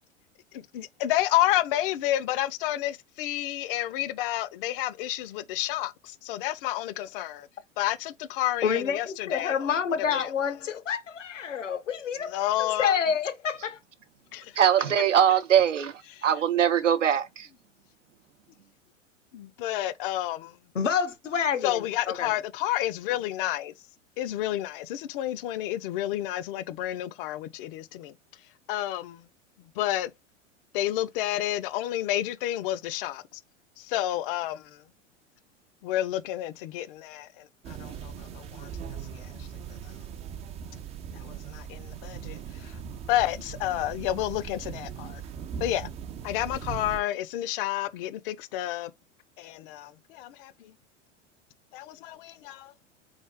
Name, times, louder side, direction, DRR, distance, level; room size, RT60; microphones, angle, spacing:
voice 1, 0.5-7.5 7.8-9.7 10.1-10.3 12.3-13.0 14.3-14.5 16.1-16.3 19.3-20.6 21.6-23.7 24.2-28.1 28.7-29.2 29.8-30.1 30.7-33.4 33.8-34.8 35.8-38.7 39.1-39.5 41.1-42.8 43.1-45.2 45.6-45.9 46.2-48.9 49.4-50.7 51.7-52.7, left 14 dB, 45° left, 0.6 m, -30 dB
voice 2, 8.6-13.8 20.7-22.3, left 7 dB, 80° left, 0.9 m, -28 dB
voice 3, 14.6-17.5, right 9 dB, 80° right, 0.7 m, -22 dB
sound 1, 37.6-47.0, right 8 dB, 20° right, 0.4 m, -39 dB
3.7 x 3.6 x 3.6 m
figure-of-eight pair, 90°, 37 cm